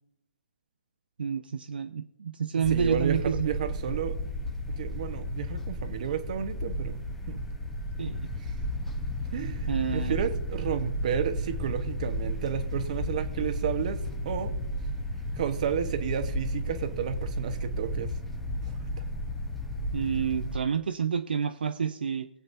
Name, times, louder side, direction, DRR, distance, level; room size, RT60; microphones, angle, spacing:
voice 1, 1.2-3.5 8.0-8.3 9.7-10.2 19.9-22.3, right 7 dB, 70° right, 9 dB, 0.6 m, -29 dB
sound 1, 2.6-20.6, equal, 5° left, 1.1 m, -33 dB
voice 2, 2.7-4.2 4.8-7.4 9.3-14.0 14.2-14.5 15.4-18.1 18.7-19.0, right 8 dB, 45° right, 9 dB, 1.2 m, -32 dB
21.5 x 7.9 x 2.7 m, 0.84 s
hypercardioid pair, 140°, 5 cm